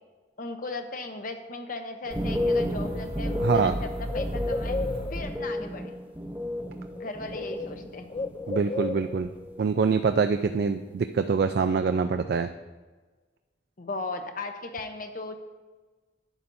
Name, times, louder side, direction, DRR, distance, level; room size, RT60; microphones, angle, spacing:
voice 1, 0.4-4.8 5.1-6.0 7.0-8.1 13.8-15.4, left 3 dB, 50° left, 6 dB, 0.8 m, -37 dB
sound 1, 2.0-7.9 8.1-8.9 9.2-9.6, left 1 dB, 10° right, 0.7 m, -32 dB
sound 2, 2.1-5.9, right 1 dB, 30° right, 1.2 m, -35 dB
Bird, 2.9-5.4 6.5-6.7 6.9-9.4, left 3 dB, 30° left, 0.3 m, -35 dB
voice 2, 3.4-3.7 8.5-9.3 9.6-12.5, right 5 dB, 60° right, 8 dB, 0.3 m, -25 dB
11.0 x 9.1 x 2.7 m, 1.3 s
head